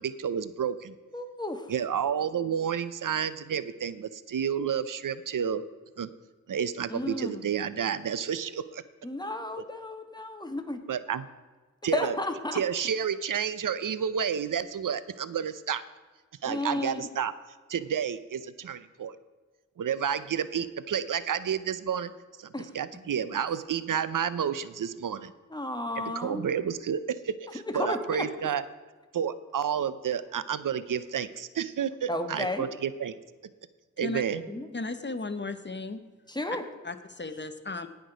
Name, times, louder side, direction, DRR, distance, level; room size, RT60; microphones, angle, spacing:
voice 1, 0.0-0.9 1.7-5.6 6.0-6.1 6.5-8.8 9.6-9.7 10.9-11.2 11.8-12.2 12.5-15.8 16.4-17.3 17.7-19.1 19.8-22.1 22.4-25.3 26.0-28.6 29.1-33.1 34.0-34.4, right 8 dB, 80° right, 15 dB, 0.6 m, -30 dB
voice 2, 1.1-1.6 6.9-7.4 9.0-10.8 11.9-12.6 16.4-17.1 22.5-22.7 25.5-26.4 27.7-28.2 32.1-32.7 34.3-34.7 36.3-36.6, left 1 dB, 15° left, 5 dB, 1.6 m, -33 dB
voice 3, 34.7-36.0 36.8-37.9, left 3 dB, 35° left, 10 dB, 0.8 m, -35 dB
17.5 x 6.1 x 5.0 m, 1.3 s
wide cardioid pair, 60°, 31 cm